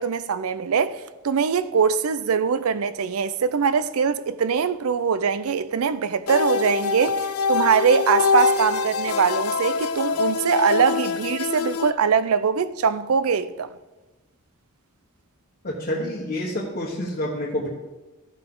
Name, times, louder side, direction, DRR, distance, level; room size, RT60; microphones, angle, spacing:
voice 1, 0.0-13.7, right 6 dB, 75° right, 0.5 m, -22 dB
sound 1, 6.3-11.9, left 5 dB, 70° left, 0.4 m, -24 dB
voice 2, 15.6-17.7, left 1 dB, 40° left, 1.2 m, -28 dB
14.0 x 5.8 x 3.8 m
head